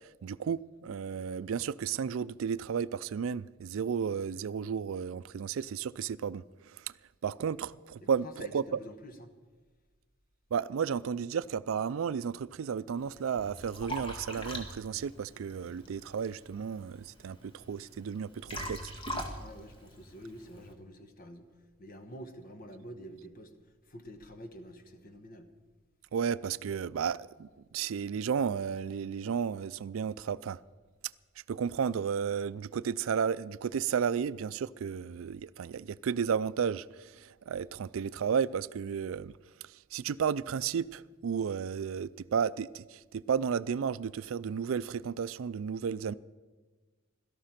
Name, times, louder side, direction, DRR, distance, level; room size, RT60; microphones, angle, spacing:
voice 1, 0.2-6.9 7.2-8.8 10.5-18.9 26.1-27.5 27.7-30.6 31.5-39.3 39.7-46.1, right 7 dB, 80° right, 0.4 m, -33 dB
voice 2, 8.0-9.3 19.4-21.5 21.8-23.5 23.9-25.5, equal, 45° left, 1.3 m, -48 dB
Liquid, 13.0-20.7, equal, 25° left, 1.8 m, -43 dB
17.0 x 13.0 x 5.8 m
head